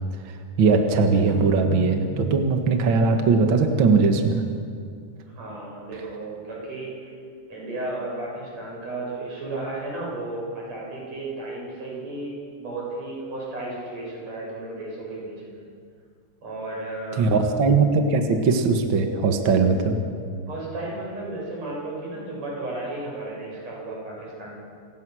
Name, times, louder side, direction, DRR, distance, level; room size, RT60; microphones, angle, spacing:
voice 1, 0.2-4.4 17.2-20.0, right 4 dB, 65° right, 4 dB, 1.2 m, -20 dB
sound 1, 1.3-4.8, right 4 dB, 80° left, 7.3 m, -37 dB
voice 2, 5.3-7.1 7.5-15.6 16.4-17.4 20.5-24.6, right 2 dB, 40° right, -4 dB, 8.5 m, -34 dB
28.5 x 17.5 x 6.3 m, 2.2 s
omnidirectional pair, 4.6 m